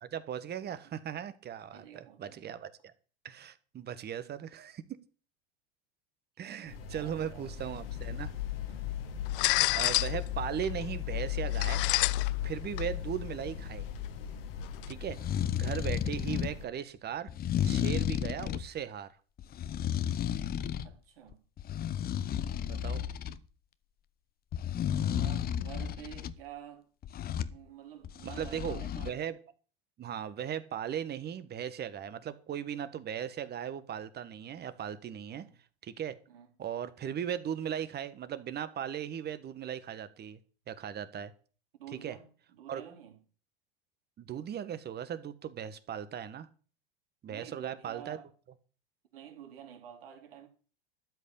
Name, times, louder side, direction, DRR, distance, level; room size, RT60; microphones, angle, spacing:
voice 1, 0.0-2.9 3.2-4.8 6.4-8.3 9.7-11.8 12.4-13.9 14.9-15.2 15.5-17.3 17.6-19.1 22.7-23.0 28.2-29.4 30.0-35.4 35.8-36.2 36.6-40.4 40.7-41.3 42.0-42.1 42.7-42.8 44.2-46.5 47.2-48.2, right 9 dB, 35° right, 1.5 m, -38 dB
voice 2, 1.7-2.4 6.4-7.5 8.7-9.0 16.3-16.5 20.8-21.4 24.9-26.9 27.5-29.1 35.3-35.5 36.3-36.5 41.8-43.2 47.3-48.3 49.1-50.5, right 10 dB, 70° right, 3.4 m, -50 dB
sound 1, 6.6-16.6, left 3 dB, 80° left, 2.2 m, -45 dB
sound 2, 7.7-14.9, left 19 dB, 65° left, 0.5 m, -32 dB
sound 3, 15.0-16.6 17.3-18.7 19.4-20.9 21.3-23.4 24.5-26.3 27.0-27.6 28.0-29.1, left 10 dB, 30° left, 0.9 m, -33 dB
13.0 x 5.4 x 9.0 m
hypercardioid pair, 85°, 30 cm